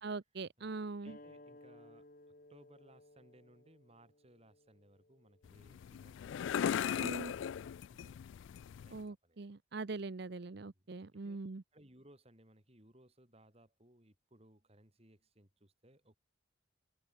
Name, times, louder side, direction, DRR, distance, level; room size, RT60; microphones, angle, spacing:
voice 1, 0.0-1.2 7.0-7.3 8.9-11.6, right 3 dB, 55° right, 0.7 m, -42 dB
voice 2, 1.0-2.1 2.5-8.3 8.8-9.5 10.7-10.9 11.2-11.4 11.7-16.2, right 1 dB, 30° right, 4.5 m, -64 dB
sound 1, 1.1-6.2, left 1 dB, 45° left, 2.1 m, -59 dB
sound 2, 5.4-9.0, left 8 dB, 70° left, 0.3 m, -38 dB
head